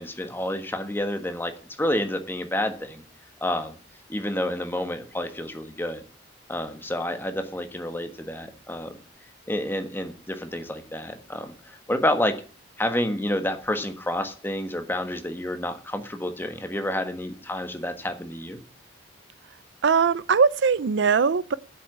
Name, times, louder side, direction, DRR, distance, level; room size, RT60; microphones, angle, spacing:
voice 1, 0.0-1.5 1.8-3.0 3.4-3.8 4.1-6.0 6.5-9.0 9.5-12.3 12.8-18.6, left 1 dB, 10° left, 1.4 m, -29 dB
voice 2, 19.8-21.5, right 5 dB, 75° right, 0.5 m, -20 dB
8.5 x 7.9 x 8.3 m
head